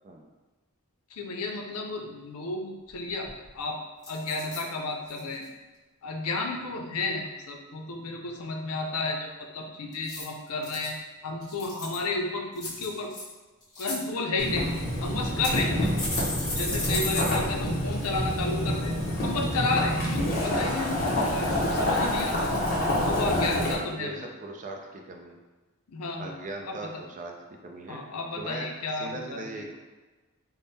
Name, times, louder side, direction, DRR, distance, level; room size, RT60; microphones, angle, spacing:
voice 1, 1.1-3.8 4.1-5.5 6.0-11.0 11.2-13.1 13.8-14.7 15.0-16.0 16.5-19.0 19.2-22.6 23.0-24.3 25.9-27.0 27.9-29.5, left 3 dB, 75° left, 2 dB, 0.5 m, -32 dB
sound 1, 2.9-3.0 3.2-3.6 4.0-4.6 5.1-5.4 9.9-10.9 11.4-12.1 12.6-13.2 13.6-14.0 14.7-14.8 15.4-17.4 17.7-17.8 18.1-18.2, left 2 dB, 20° left, 1.2 m, -34 dB
Boiling, 14.4-23.7, left 1 dB, 45° left, 0.9 m, -27 dB
voice 2, 22.9-23.7 23.9-25.4 26.2-27.4 27.6-28.0 28.4-28.7 29.0-29.8, right 2 dB, 35° right, 2 dB, 0.4 m, -39 dB
3.5 x 2.1 x 4.0 m, 1.2 s
head